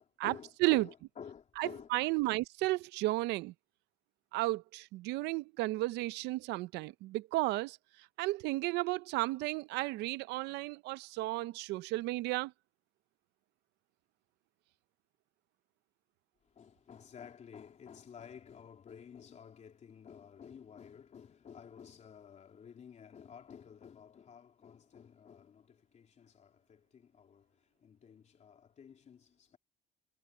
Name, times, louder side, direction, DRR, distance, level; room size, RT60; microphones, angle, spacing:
voice 1, 0.0-1.9 16.5-27.5 27.8-29.6, left 7 dB, 45° left, 3.3 m, -52 dB
voice 2, 1.6-3.5 4.3-7.8 8.2-12.5, right 19 dB, 90° right, 0.6 m, -33 dB
cardioid pair, 110°, 17 cm